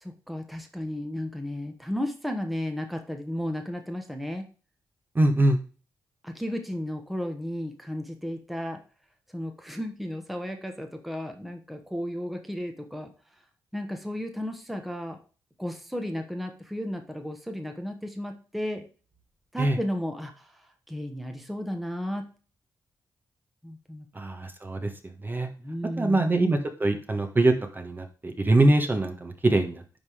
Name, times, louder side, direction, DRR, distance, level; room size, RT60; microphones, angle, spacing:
voice 1, 0.0-4.5 6.2-8.8 9.3-13.1 13.7-15.2 15.6-18.8 19.5-22.3 23.6-24.1 25.6-26.3, equal, ahead, 4 dB, 1.3 m, -34 dB
voice 2, 5.1-5.6 19.6-19.8 24.1-24.9 25.2-25.5 26.0-30.0, right 2 dB, 25° right, 5 dB, 1.3 m, -23 dB
10.5 x 3.8 x 4.9 m, 0.37 s
cardioid pair, 90°, 8 cm